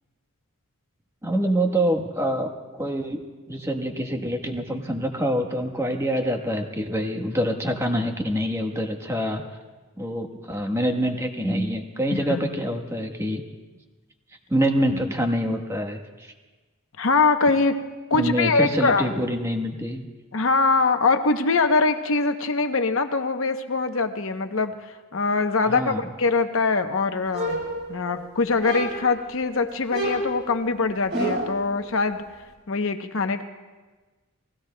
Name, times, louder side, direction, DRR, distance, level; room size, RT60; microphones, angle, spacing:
voice 1, 1.2-3.2 3.5-9.4 10.0-13.4 14.5-16.3 18.1-20.0 25.7-26.1, equal, 10° right, 3 dB, 1.1 m, -26 dB
voice 2, 12.1-12.5 17.0-17.8 18.1-19.1 20.3-27.6 27.9-32.2 32.7-33.4, left 3 dB, 60° left, 7 dB, 0.8 m, -23 dB
sound 1, 27.3-28.2 28.6-29.2 29.9-31.6, right 1 dB, 55° right, 3.7 m, -29 dB
30.0 x 19.0 x 2.2 m, 1.3 s
head